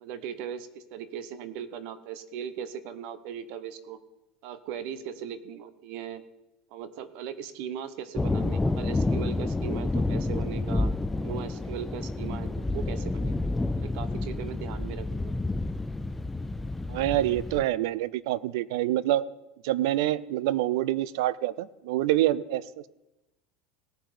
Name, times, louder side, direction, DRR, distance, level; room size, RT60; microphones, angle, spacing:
voice 1, 0.0-4.0 4.4-6.2 6.7-10.9 11.2-13.4 13.8-15.3, right 8 dB, 60° right, 13 dB, 0.9 m, -38 dB
sound 1, 8.2-17.6, left 2 dB, 10° left, 0.3 m, -29 dB
voice 2, 16.9-19.3 19.6-22.6, right 14 dB, 75° right, 19 dB, 0.5 m, -26 dB
17.5 x 6.4 x 5.0 m, 0.96 s
supercardioid pair, 135°, 2 cm